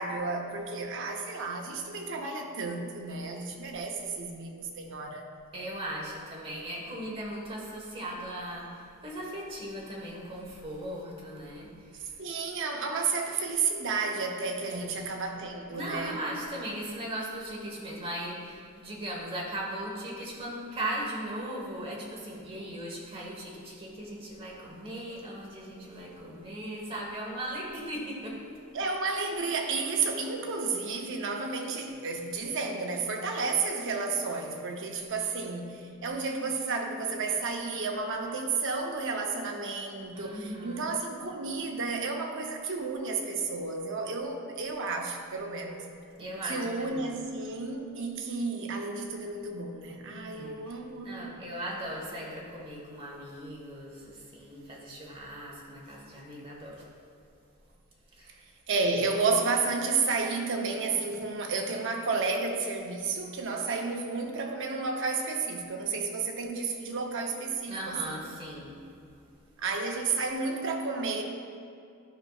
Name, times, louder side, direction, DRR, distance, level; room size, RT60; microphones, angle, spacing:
voice 1, 0.0-5.3 12.2-16.2 28.7-45.9 46.4-51.3 58.7-68.2 69.6-71.2, right 4 dB, 55° right, 2 dB, 0.7 m, -32 dB
voice 2, 5.5-11.7 14.7-14.9 15.7-28.4 40.1-40.8 46.2-47.2 50.3-50.8 51.0-56.8 58.2-58.3 67.7-68.7, right 1 dB, 25° right, -3 dB, 1.3 m, -38 dB
11.0 x 5.3 x 2.4 m, 2.4 s
head